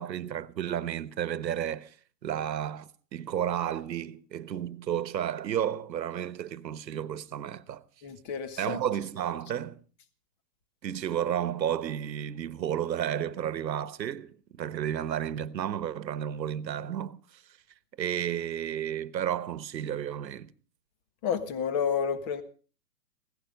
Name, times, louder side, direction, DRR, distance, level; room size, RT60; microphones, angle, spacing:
voice 1, 0.0-1.9 2.2-7.8 8.6-9.8 10.8-17.4 18.0-20.5, right 10 dB, 80° right, 1.3 m, -32 dB
voice 2, 8.0-8.8 21.2-22.4, left 7 dB, 25° left, 1.5 m, -30 dB
16.5 x 15.0 x 5.2 m
hypercardioid pair, 155°, 50 cm